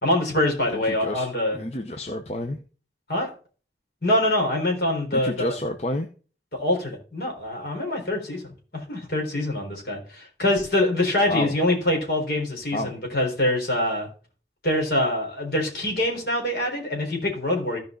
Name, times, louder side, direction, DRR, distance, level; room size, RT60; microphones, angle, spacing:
voice 1, 0.0-1.6 3.1-3.3 4.0-5.5 6.5-14.1 14.6-17.8, left 1 dB, 60° left, 1 dB, 3.9 m, -24 dB
voice 2, 0.7-1.3 1.5-2.6 5.1-6.1 11.3-11.5 12.7-12.9, left 1 dB, 35° left, 5 dB, 0.7 m, -29 dB
15.5 x 5.3 x 3.8 m, 0.37 s
head